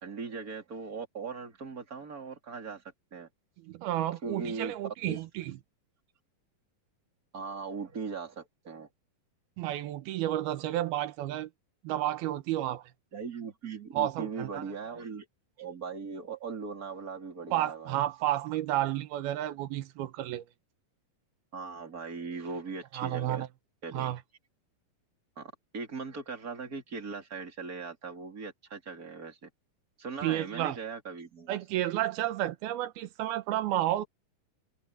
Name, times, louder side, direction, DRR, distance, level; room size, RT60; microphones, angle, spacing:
voice 1, 0.0-2.8 3.1-3.3 4.2-4.7 5.1-5.2 7.3-8.9 13.1-15.3 15.6-18.0 21.5-23.5 23.8-24.2 25.4-29.5 30.0-31.6, right 5 dB, 25° right, 3.6 m, -39 dB
voice 2, 3.7-5.6 9.6-11.5 11.8-12.8 13.9-14.6 17.5-20.4 23.0-23.5 23.9-24.2 30.2-30.8 31.5-34.0, right 13 dB, 90° right, 3.0 m, -31 dB
omnidirectional pair, 4.3 m